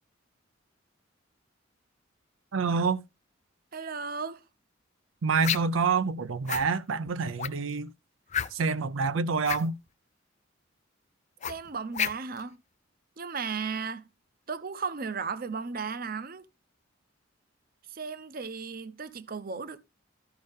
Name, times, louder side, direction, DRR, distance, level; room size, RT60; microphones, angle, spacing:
voice 1, 2.5-3.0 5.2-7.9 8.5-9.7, right 4 dB, 90° right, 0.5 m, -27 dB
voice 2, 3.7-4.4 11.5-12.6 13.2-14.1 14.5-16.5 17.9-19.8, right 5 dB, 50° right, 0.7 m, -35 dB
sound 1, 5.4-5.8 6.5-6.7 7.4-7.7 8.3-8.8 9.4-9.7 11.4-12.4, left 9 dB, 35° left, 0.4 m, -31 dB
13.5 x 5.3 x 3.6 m
head